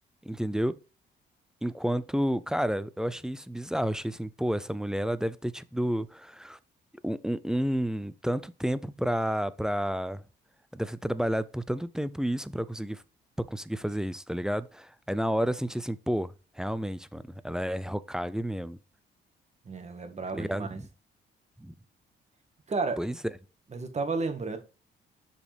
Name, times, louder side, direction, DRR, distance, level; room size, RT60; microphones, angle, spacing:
voice 1, 0.2-0.8 1.6-6.6 7.0-10.2 10.7-13.0 13.4-18.8 20.3-20.9 21.6-21.7 23.0-23.2, equal, 5° right, 0.4 m, -31 dB
voice 2, 19.7-20.8 22.7-23.0 23.7-24.6, right 4 dB, 35° right, 1.6 m, -32 dB
6.7 x 5.2 x 3.4 m
cardioid pair, 90°, 20 cm